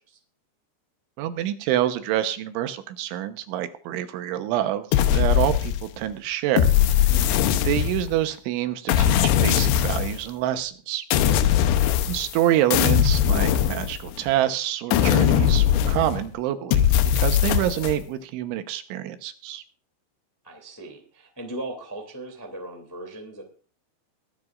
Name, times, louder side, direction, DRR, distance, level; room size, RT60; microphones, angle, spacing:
voice 1, 1.2-4.9 5.1-6.7 7.7-11.1 12.1-16.9 17.2-19.6, right 12 dB, 90° right, 9 dB, 3.4 m, -26 dB
sound 1, 4.9-6.0 6.6-8.2 8.9-10.2 11.1-12.4 12.7-14.3 14.9-16.3 16.7-18.0, left 10 dB, 75° left, 2.8 m, -20 dB
voice 2, 7.1-7.4 11.2-11.6 20.4-23.4, right 1 dB, 10° left, 2 dB, 0.8 m, -38 dB
22.5 x 10.5 x 2.5 m, 0.40 s
omnidirectional pair, 5.3 m